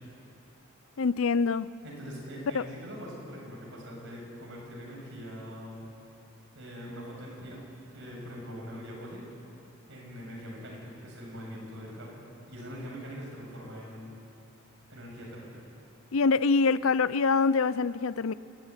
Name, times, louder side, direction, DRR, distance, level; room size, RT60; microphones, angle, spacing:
voice 1, 1.0-1.7 2.5-2.6 16.1-18.3, left 4 dB, 75° left, 0.6 m, -25 dB
voice 2, 1.8-5.9 6.5-7.7 7.9-9.2 9.9-12.2 12.5-14.1 14.9-15.6, equal, 60° right, 7.5 m, -42 dB
27.0 x 15.0 x 10.0 m
head